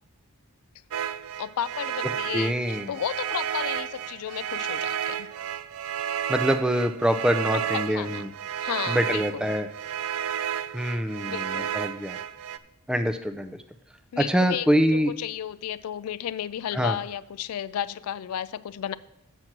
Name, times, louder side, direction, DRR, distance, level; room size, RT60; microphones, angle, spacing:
sound 1, 0.9-12.6, right 9 dB, 65° right, 0.4 m, -32 dB
voice 1, 1.4-2.5 2.9-5.3 7.5-8.3 8.6-9.5 11.3-11.7 14.1-18.9, left 10 dB, 80° left, 16 dB, 0.3 m, -33 dB
voice 2, 2.3-2.9 6.3-8.3 8.9-9.7 10.7-12.2 12.9-13.6 14.2-15.1 16.7-17.0, equal, 5° right, 8 dB, 0.4 m, -25 dB
7.9 x 6.0 x 6.0 m, 0.80 s
head